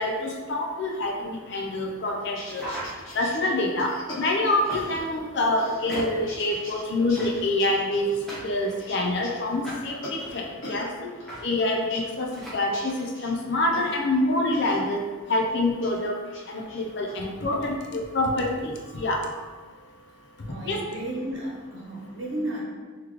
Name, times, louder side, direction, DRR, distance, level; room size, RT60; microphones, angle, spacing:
voice 1, 0.0-2.6 3.1-8.1 8.4-10.9 11.4-15.0 15.3-16.2 16.5-19.4 20.6-20.8, left 2 dB, 60° left, 0 dB, 0.6 m, -26 dB
sound 1, 2.2-5.3 5.5-6.8 7.1-10.9 11.2-14.2 14.5-14.8 15.3-16.0 16.3-17.1, left 1 dB, 80° left, 0.9 m, -42 dB
sound 2, 2.6-3.4 4.7-5.2 5.9-6.3 7.1-7.6 8.3-9.1 9.6-10.4 11.3-11.4 11.7-11.8 12.3-12.6, equal, 5° left, 1.0 m, -38 dB
voice 2, 20.4-22.6, right 1 dB, 70° right, -5 dB, 0.9 m, -33 dB
3.9 x 3.1 x 3.1 m, 1.4 s
head